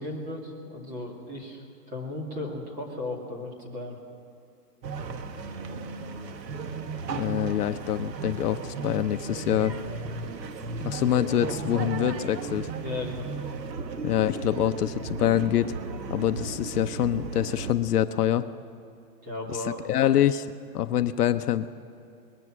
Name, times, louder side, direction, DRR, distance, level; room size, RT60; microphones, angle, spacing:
voice 1, 0.0-4.0 12.8-13.3 19.2-19.8, left 2 dB, 15° right, 0 dB, 2.6 m, -35 dB
sound 1, 4.8-17.7, right 4 dB, 85° right, 1.8 m, -35 dB
voice 2, 7.1-9.7 10.8-12.7 14.0-15.7 16.1-18.5 19.5-20.5 20.7-21.7, left 11 dB, 65° left, 10 dB, 0.8 m, -25 dB
22.0 x 20.5 x 6.1 m, 2.5 s
hypercardioid pair, 165°, 49 cm